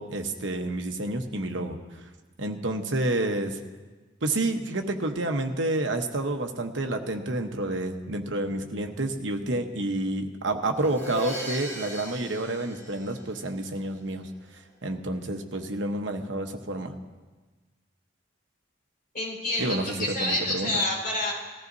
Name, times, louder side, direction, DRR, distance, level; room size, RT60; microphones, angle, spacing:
voice 1, 0.0-1.8 2.4-3.6 4.2-14.3 14.8-16.9 19.6-20.7, right 2 dB, 65° right, 4 dB, 1.0 m, -29 dB
Crash cymbal, 10.8-13.7, right 1 dB, 15° left, 3.8 m, -38 dB
voice 2, 19.1-21.3, left 1 dB, 45° left, -5 dB, 4.9 m, -28 dB
19.5 x 14.5 x 2.7 m, 1.3 s
head